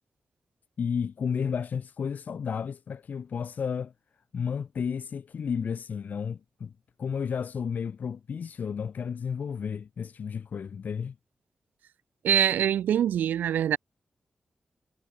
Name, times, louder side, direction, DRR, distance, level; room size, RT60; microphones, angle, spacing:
voice 1, 0.8-3.9 4.3-6.7 7.0-11.1, left 6 dB, 70° left, 1.5 m, -32 dB
voice 2, 12.2-13.8, right 10 dB, 85° right, 0.8 m, -24 dB
supercardioid pair, 40°, 3 cm